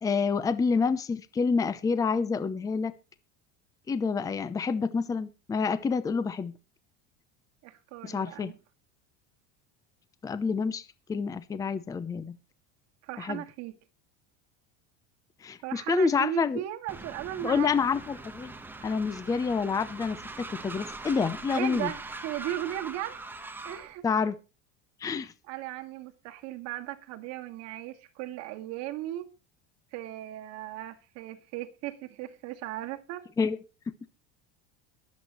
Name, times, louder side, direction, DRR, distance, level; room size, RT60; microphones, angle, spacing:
voice 1, 0.0-2.9 3.9-6.5 8.0-8.5 10.2-12.4 13.2-13.4 15.4-16.6 17.4-18.5 18.8-21.9 24.0-24.3 25.0-25.3 33.4-33.6, left 5 dB, 10° left, 0.6 m, -28 dB
voice 2, 7.6-8.5 13.0-13.8 15.6-17.7 21.5-23.2 23.6-24.3 25.5-29.3 29.9-33.3, right 14 dB, 50° right, 2.0 m, -37 dB
Train, 16.9-23.9, right 3 dB, 5° right, 1.1 m, -42 dB
22.0 x 8.3 x 3.0 m
cardioid pair, 165°, 34 cm